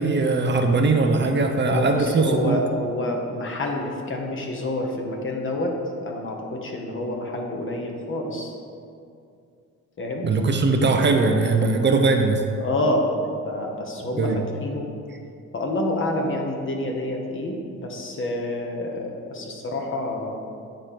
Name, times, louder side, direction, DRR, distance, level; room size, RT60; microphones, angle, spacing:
voice 1, 0.0-2.6 10.2-12.4 14.2-14.4, right 3 dB, 35° right, 4 dB, 0.6 m, -20 dB
voice 2, 1.6-5.8 6.0-8.6 10.0-10.3 12.6-13.1 13.4-14.3 14.6-14.9 15.5-20.4, left 1 dB, 40° left, 1 dB, 1.2 m, -28 dB
9.0 x 3.3 x 5.8 m, 2.4 s
cardioid pair, 90°, 30 cm